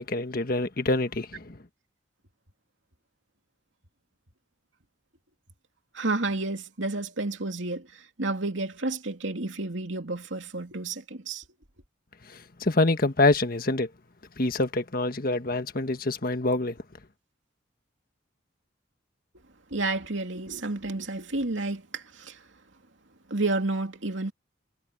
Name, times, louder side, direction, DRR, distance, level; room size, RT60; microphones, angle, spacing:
voice 1, 0.0-1.6 12.3-13.9 14.4-16.8, left 2 dB, 50° left, 1.5 m, -26 dB
voice 2, 5.9-11.4 19.7-22.4 23.3-24.3, right 2 dB, 75° right, 2.8 m, -31 dB
head